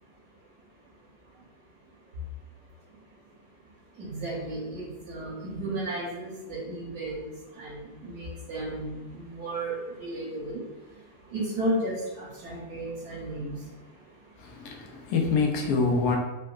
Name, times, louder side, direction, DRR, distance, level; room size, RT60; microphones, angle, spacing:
voice 1, 4.0-7.3 7.6-10.6 11.3-13.5, right 1 dB, 85° right, -8 dB, 1.4 m, -33 dB
voice 2, 14.4-16.2, left 4 dB, 90° left, 1 dB, 1.2 m, -26 dB
3.8 x 2.2 x 2.3 m, 1.2 s
omnidirectional pair, 1.6 m